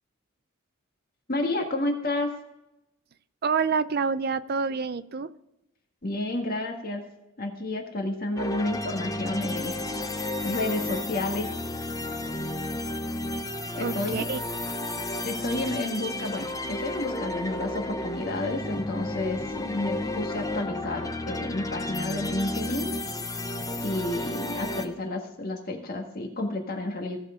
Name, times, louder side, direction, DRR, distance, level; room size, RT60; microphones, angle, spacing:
voice 1, 1.3-2.3 6.0-7.0 7.4-9.7 10.4-11.5 13.7-14.2 15.2-22.9 23.8-27.2, left 2 dB, 45° left, 2 dB, 1.6 m, -30 dB
voice 2, 3.4-5.3 13.8-14.4, right 5 dB, 50° right, 13 dB, 0.5 m, -27 dB
sound 1, 8.4-24.9, left 1 dB, 15° left, 0.7 m, -32 dB
17.0 x 6.6 x 3.7 m, 0.93 s
head